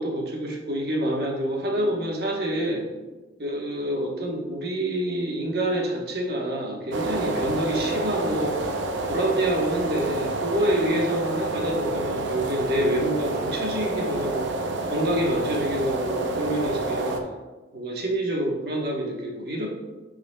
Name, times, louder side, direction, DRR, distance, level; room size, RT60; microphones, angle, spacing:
voice 1, 0.0-2.8 3.4-8.6 9.1-14.6 14.9-17.2 17.7-19.7, right 1 dB, 60° right, -1 dB, 1.2 m, -27 dB
sound 1, 6.9-17.2, right 2 dB, 80° right, 0.6 m, -29 dB
9.0 x 5.1 x 2.3 m, 1.2 s
head